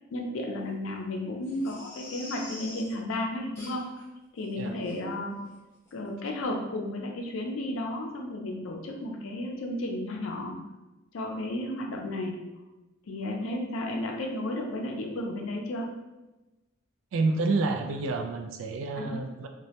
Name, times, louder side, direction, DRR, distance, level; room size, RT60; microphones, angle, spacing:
voice 1, 0.1-3.8 4.3-5.4 5.9-10.6 11.1-12.4 13.1-15.9 18.9-19.2, left 1 dB, 85° left, 1 dB, 0.4 m, -33 dB
Crying sobbing, 1.4-2.9 3.5-4.0 4.4-4.5 4.8-5.0 5.4-5.6 5.9-6.0, left 2 dB, 15° left, 0.6 m, -45 dB
voice 2, 17.1-19.5, right 3 dB, 80° right, 6 dB, 0.3 m, -29 dB
2.2 x 2.0 x 2.8 m, 1.1 s
head